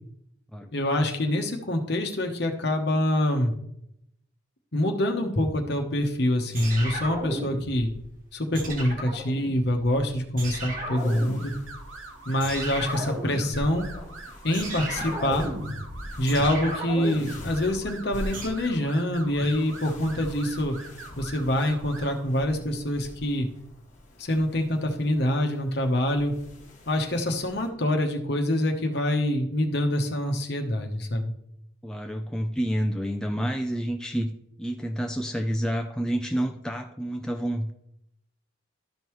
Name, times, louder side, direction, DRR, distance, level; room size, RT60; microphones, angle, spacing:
voice 1, 0.7-3.5 4.7-7.9 8.3-11.5 12.3-13.9 14.4-15.5 16.2-20.8 21.2-23.5 24.2-26.3 26.9-31.3, left 1 dB, 55° left, 4 dB, 1.0 m, -25 dB
sound 1, 6.5-8.0 8.5-10.1 10.4-12.0 12.4-18.5, equal, 40° right, 1.3 m, -35 dB
sound 2, 10.9-27.7, left 1 dB, 40° left, 1.5 m, -43 dB
sound 3, 11.1-22.3, right 3 dB, 85° right, 1.2 m, -45 dB
voice 2, 31.8-34.3 34.6-37.7, equal, 5° left, 3 dB, 0.3 m, -29 dB
12.5 x 5.3 x 3.1 m, 0.77 s
head